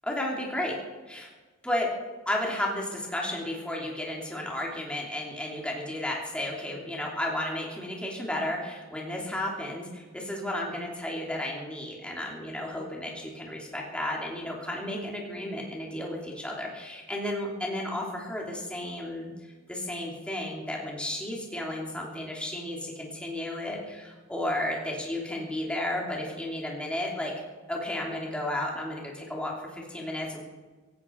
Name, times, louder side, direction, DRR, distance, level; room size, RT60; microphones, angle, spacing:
voice 1, 0.1-0.8 1.1-1.3 1.6-1.9 2.3-19.3 19.7-27.3 27.7-30.4, left 1 dB, 5° left, -2 dB, 3.1 m, -33 dB
17.0 x 17.0 x 4.7 m, 1.3 s
head